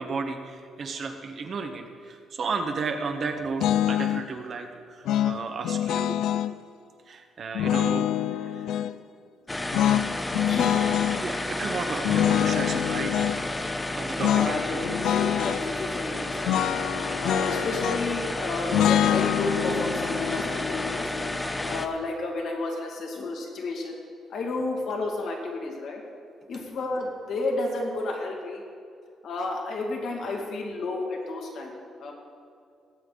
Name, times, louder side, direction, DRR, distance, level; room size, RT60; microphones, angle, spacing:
voice 1, 0.0-6.2 7.1-8.6 11.2-13.3 13.9-14.8, right 4 dB, 55° right, 5 dB, 1.5 m, -33 dB
sound 1, 3.6-4.3 5.1-6.5 7.5-8.9 9.7-11.2 12.0-13.4 14.2-14.6 14.8-15.6 16.5-18.2 18.7-21.8, left 11 dB, 85° left, 0.3 m, -25 dB
sound 2, 9.5-21.9, left 2 dB, 15° left, 0.9 m, -31 dB
voice 2, 10.5-11.0 14.0-16.6 17.2-21.1 21.6-24.0 24.3-26.0 26.5-28.6 29.2-32.1, left 2 dB, 65° left, 0 dB, 2.3 m, -31 dB
17.5 x 8.3 x 4.1 m, 2.4 s
cardioid pair, 90°, 0 cm